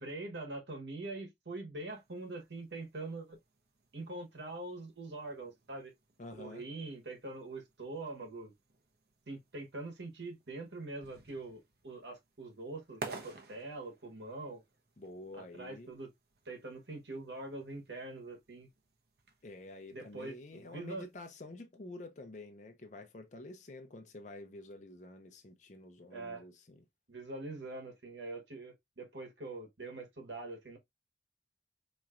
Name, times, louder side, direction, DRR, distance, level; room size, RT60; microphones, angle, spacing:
voice 1, 0.0-3.4 3.9-5.9 6.4-8.5 9.3-14.6 15.3-16.1 16.5-18.7 19.9-21.1 26.1-26.4 27.1-30.8, right 2 dB, 85° right, 1.4 m, -43 dB
sound 1, 1.9-21.2, right 3 dB, 60° right, 0.9 m, -55 dB
voice 2, 6.2-6.6 15.0-15.9 19.4-26.8, left 2 dB, 45° left, 0.6 m, -49 dB
4.3 x 3.0 x 2.4 m
head